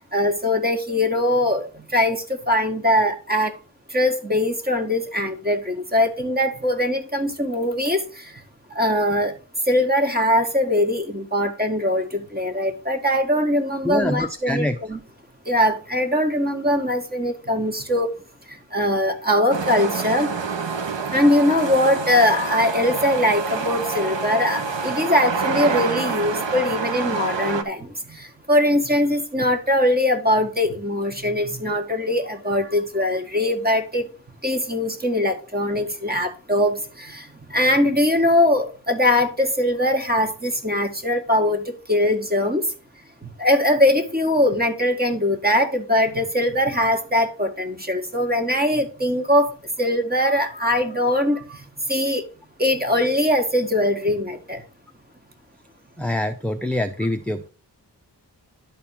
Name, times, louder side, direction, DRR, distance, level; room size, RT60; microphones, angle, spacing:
voice 1, 0.0-3.6 3.9-8.4 8.7-9.3 9.7-15.0 15.5-18.1 18.5-20.3 21.1-34.1 34.4-42.7 43.2-52.3 52.6-54.6, left 1 dB, 20° right, 1.9 m, -21 dB
voice 2, 13.8-14.8 56.0-57.5, left 1 dB, 5° left, 0.7 m, -25 dB
sound 1, 19.5-27.6, right 4 dB, 90° right, 1.1 m, -27 dB
11.0 x 4.3 x 5.8 m
wide cardioid pair, 70°, 43 cm